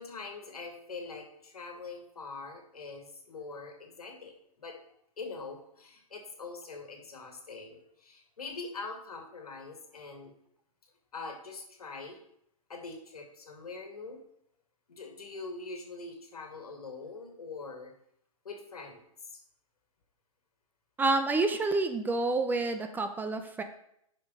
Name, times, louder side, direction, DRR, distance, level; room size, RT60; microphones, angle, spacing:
voice 1, 0.0-4.8 5.2-10.3 11.1-12.2 12.7-14.2 14.9-17.9 18.4-19.4, left 4 dB, 90° left, 3 dB, 2.1 m, -43 dB
voice 2, 21.0-23.6, right 3 dB, 10° right, 7 dB, 0.5 m, -28 dB
6.9 x 5.3 x 5.4 m, 0.73 s
hypercardioid pair, 130°, 19 cm